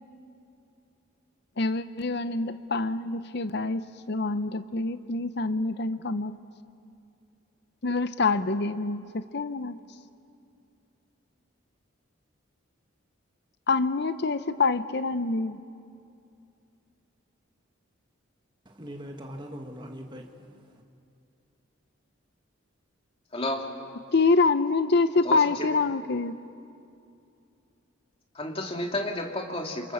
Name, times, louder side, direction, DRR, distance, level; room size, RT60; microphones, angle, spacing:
voice 1, 1.6-6.3 7.8-9.8 13.7-15.6 24.1-26.4, left 3 dB, 55° left, 0.7 m, -26 dB
voice 2, 18.7-20.8, equal, 25° right, 2.0 m, -42 dB
voice 3, 23.3-23.7 25.2-25.7 28.4-29.9, left 1 dB, 30° left, 2.4 m, -31 dB
28.0 x 27.5 x 7.2 m
head